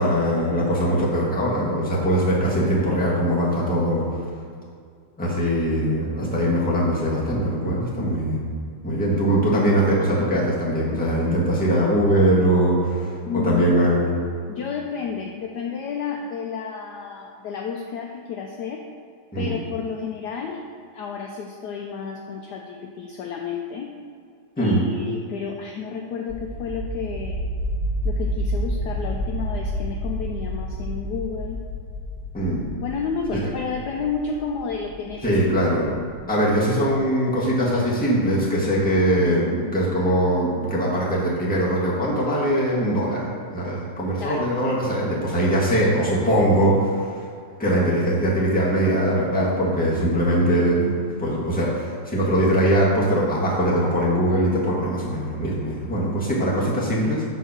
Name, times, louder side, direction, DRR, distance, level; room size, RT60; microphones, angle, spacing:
voice 1, 0.0-4.0 5.2-8.5 8.8-13.1 13.3-14.1 19.3-19.6 24.6-24.8 32.3-32.6 33.3-33.4 35.2-35.9 36.3-47.0 47.6-57.2, equal, 5° left, -6 dB, 1.2 m, -21 dB
voice 2, 13.2-13.9 14.5-18.8 19.4-20.6 20.9-23.9 24.6-27.4 28.0-31.6 32.8-35.4 44.2-44.5 51.5-51.6, left 6 dB, 75° left, 1 dB, 1.0 m, -31 dB
sound 1, 26.3-37.0, equal, 30° right, 2.3 m, -30 dB
7.1 x 4.1 x 5.9 m, 2.3 s
omnidirectional pair, 2.1 m